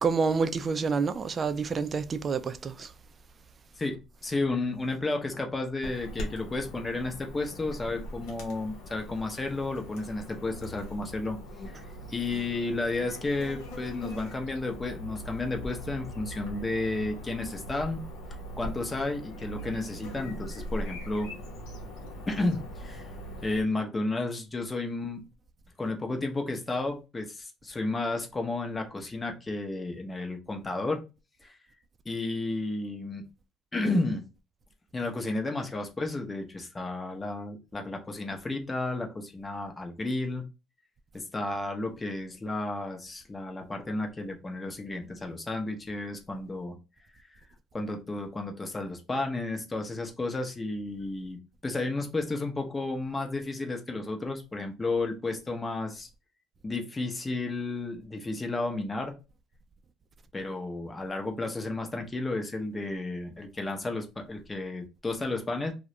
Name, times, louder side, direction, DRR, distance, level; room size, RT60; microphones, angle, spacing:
voice 1, 0.0-2.9, right 5 dB, 40° right, 0.3 m, -28 dB
voice 2, 4.2-11.4 11.7-18.0 18.6-21.3 22.3-23.1 23.4-25.2 25.8-31.0 31.4-31.6 32.1-33.2 33.7-34.2 34.9-40.4 41.1-46.8 47.7-51.4 51.6-56.1 56.6-59.1 60.3-65.7, left 2 dB, 25° left, 0.6 m, -32 dB
Chirp tweet / Buzz, 5.8-23.6, equal, 80° left, 0.7 m, -41 dB
2.3 x 2.1 x 2.8 m
supercardioid pair, 70°, 0 cm